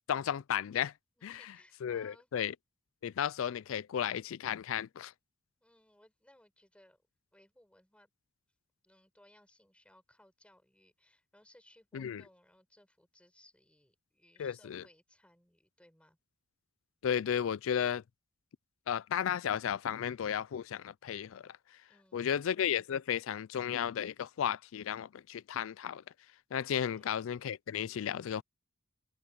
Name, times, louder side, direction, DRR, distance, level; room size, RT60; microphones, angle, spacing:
voice 1, 0.1-0.9 1.2-1.4 1.8-2.5 3.0-5.1 11.9-12.2 14.4-14.8 17.0-18.0 18.9-21.6 22.1-26.0 26.5-28.4, left 9 dB, 75° left, 0.4 m, -34 dB
voice 2, 1.2-2.3 5.6-7.0 7.3-8.1 8.8-16.2 21.9-22.4 26.8-27.1, left 1 dB, 5° left, 7.6 m, -64 dB
head